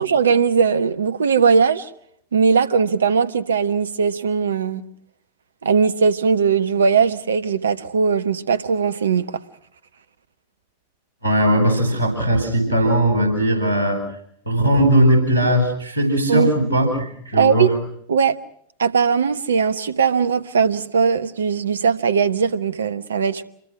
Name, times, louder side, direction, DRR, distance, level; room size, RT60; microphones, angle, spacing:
voice 1, 0.0-1.9 2.3-4.8 5.6-9.3 16.3-16.5 17.4-17.7 18.1-18.3 18.8-23.4, right 6 dB, 70° right, 1.2 m, -19 dB
voice 2, 11.2-14.0 14.5-17.7, right 1 dB, 90° left, 7.8 m, -18 dB
27.5 x 22.0 x 6.2 m
figure-of-eight pair, 90°, 0 cm